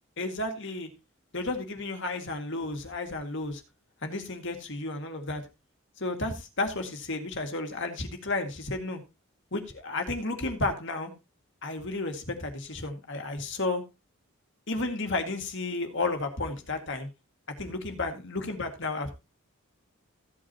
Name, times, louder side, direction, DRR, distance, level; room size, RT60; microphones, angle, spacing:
voice 1, 0.2-0.9 1.3-3.6 4.0-5.4 6.0-9.0 9.5-11.1 11.6-13.8 14.7-17.1 17.6-19.1, left 2 dB, 55° left, 5 dB, 2.1 m, -32 dB
15.0 x 8.6 x 2.9 m, 0.27 s
head